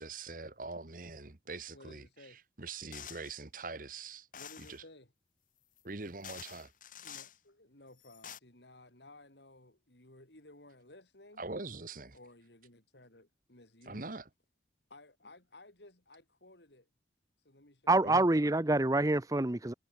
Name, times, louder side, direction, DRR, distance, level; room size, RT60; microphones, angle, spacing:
voice 1, 0.0-2.1 2.6-4.3 4.7-4.8 5.8-6.7 11.4-12.2 13.9-14.3 18.0-18.2, right 3 dB, 50° right, 1.6 m, -43 dB
voice 2, 1.7-2.4 4.3-5.1 7.0-11.5 12.1-14.2 14.9-16.9 17.4-18.5, left 2 dB, 75° left, 5.3 m, -57 dB
sound 1, 2.9-3.4 4.3-4.8 5.8-5.9 6.2-7.4 8.0-8.4, left 9 dB, 50° left, 4.3 m, -48 dB
voice 3, 17.9-19.7, right 2 dB, 20° right, 0.6 m, -26 dB
head